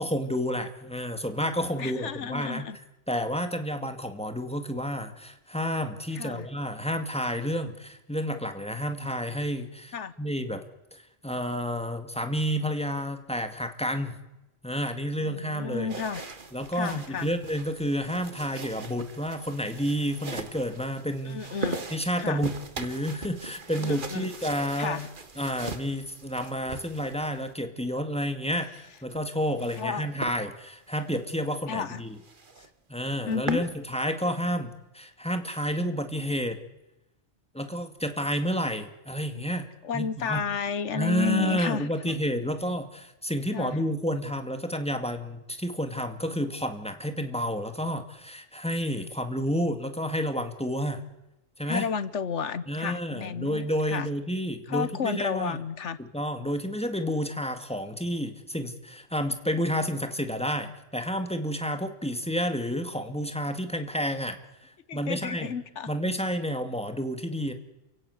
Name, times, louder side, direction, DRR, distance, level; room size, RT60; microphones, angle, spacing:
voice 1, 0.0-2.7 3.1-10.6 10.9-14.2 14.6-15.9 16.5-21.4 21.9-25.0 25.4-32.2 32.9-36.6 37.5-39.7 39.9-40.4 40.9-51.0 51.6-51.9 52.7-55.6 56.0-65.5 65.9-67.5, equal, 5° left, 7 dB, 2.1 m, -30 dB
voice 2, 1.8-2.8 6.1-6.5 9.9-10.1 15.2-16.2 16.7-17.3 21.3-21.9 22.2-22.4 23.8-24.3 24.8-25.1 29.8-30.0 31.7-32.0 33.3-33.7 39.8-42.2 43.5-43.8 51.7-54.1 54.7-56.0 64.9-65.9, left 6 dB, 70° left, 16 dB, 1.3 m, -32 dB
sound 1, 15.9-27.5 28.8-29.9 30.2-30.4 30.9-31.0 31.5-31.6 31.8-31.9 32.2-32.7 33.1-33.7, right 3 dB, 45° right, 1.7 m, -40 dB
29.0 x 16.5 x 8.2 m, 0.97 s
omnidirectional pair, 1.3 m